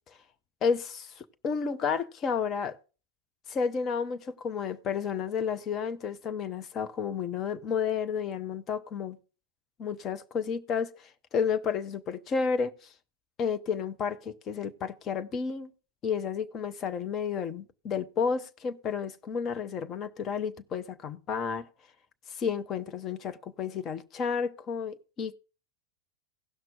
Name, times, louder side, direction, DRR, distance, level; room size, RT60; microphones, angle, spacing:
voice 1, 0.6-2.8 3.5-9.2 9.8-12.7 13.4-15.7 16.0-21.7 22.4-25.3, left 6 dB, 30° left, 0.8 m, -31 dB
17.0 x 6.0 x 3.6 m
figure-of-eight pair, 90°, 0 cm